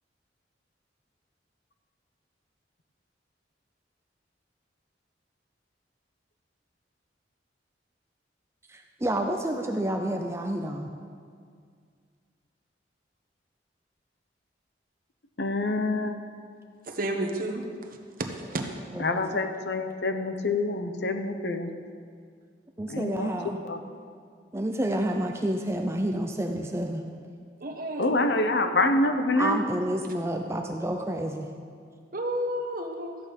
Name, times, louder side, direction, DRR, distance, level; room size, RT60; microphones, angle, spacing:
voice 1, 8.7-10.9 18.9-19.4 22.8-23.6 24.5-27.1 29.4-31.5, right 1 dB, 15° right, 3 dB, 0.5 m, -29 dB
voice 2, 15.4-16.2 19.0-21.7 22.9-23.3 23.6-23.8 28.0-29.6, left 2 dB, 70° left, 7 dB, 0.8 m, -26 dB
voice 3, 16.8-17.6 18.2-18.6 27.6-28.3 32.1-33.2, right 1 dB, 50° right, 3 dB, 1.2 m, -31 dB
14.0 x 8.6 x 5.3 m, 2.2 s
head